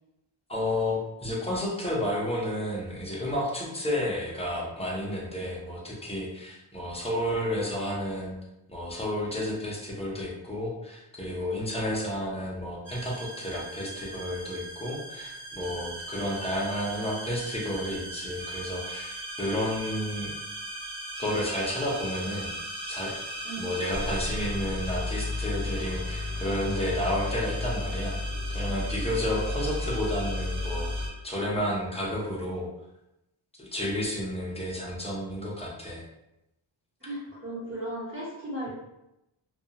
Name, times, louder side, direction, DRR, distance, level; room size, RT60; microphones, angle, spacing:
voice 1, 0.5-8.4 8.7-20.3 21.2-22.5 22.9-23.1 23.6-28.2 28.5-30.9 31.2-32.7 33.6-36.0, left 1 dB, 15° left, -4 dB, 0.6 m, -31 dB
sound 1, 12.9-31.1, left 1 dB, 85° right, 1.1 m, -35 dB
voice 2, 23.4-23.9 37.0-38.7, right 1 dB, 25° right, -8 dB, 1.2 m, -37 dB
2.4 x 2.3 x 2.8 m, 0.90 s
wide cardioid pair, 115°, 46 cm